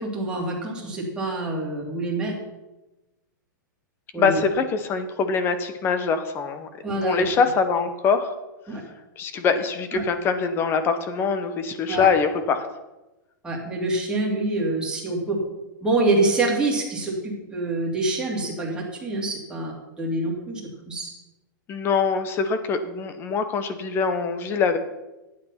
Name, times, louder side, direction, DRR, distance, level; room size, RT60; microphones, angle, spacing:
voice 1, 0.0-2.3 4.1-4.4 6.8-7.3 8.7-8.8 9.9-10.0 11.9-12.1 13.4-15.4 15.8-20.6 20.9-21.1, right 2 dB, 10° right, -3 dB, 2.7 m, -26 dB
voice 2, 4.2-6.7 7.0-8.3 9.2-12.6 21.7-24.8, left 5 dB, 20° left, 10 dB, 0.9 m, -23 dB
12.0 x 8.7 x 5.7 m, 1.0 s
supercardioid pair, 160°, 11 cm